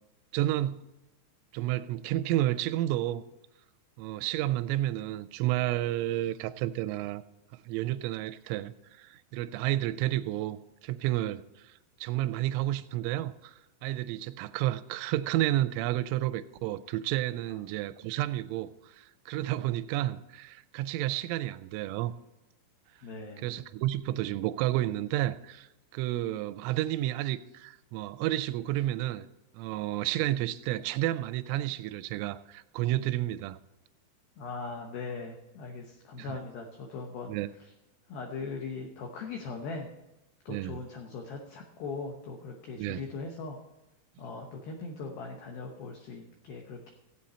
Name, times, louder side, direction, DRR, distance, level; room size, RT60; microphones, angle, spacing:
voice 1, 0.3-0.8 1.5-3.2 4.0-7.2 7.5-10.6 10.8-11.7 12.0-13.6 13.8-22.1 23.4-29.3 29.5-33.6 36.2-36.4 37.3-37.5 40.5-40.8 42.8-43.0, right 14 dB, 90° right, 3.1 m, -31 dB
voice 2, 23.0-23.5 34.4-37.3 38.1-39.9 40.5-43.6 44.2-46.9, left 4 dB, 75° left, 2.2 m, -40 dB
16.5 x 8.4 x 4.3 m
omnidirectional pair, 5.6 m